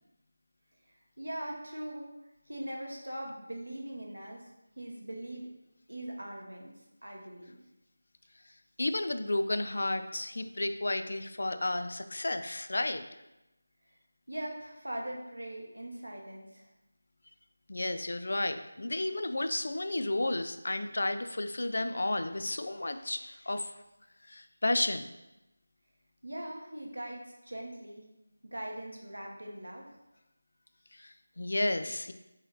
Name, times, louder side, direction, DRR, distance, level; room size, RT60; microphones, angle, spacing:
voice 1, 1.2-2.1 2.5-4.5 4.8-5.5 5.9-7.6 14.3-16.7 26.2-28.0 28.4-29.9, right 1 dB, 80° right, 0 dB, 1.0 m, -41 dB
voice 2, 8.8-13.0 17.7-23.7 24.2-25.1 30.9-32.1, left 2 dB, 60° left, 9 dB, 0.3 m, -32 dB
3.9 x 2.9 x 3.9 m, 0.95 s
figure-of-eight pair, 165°, 0 cm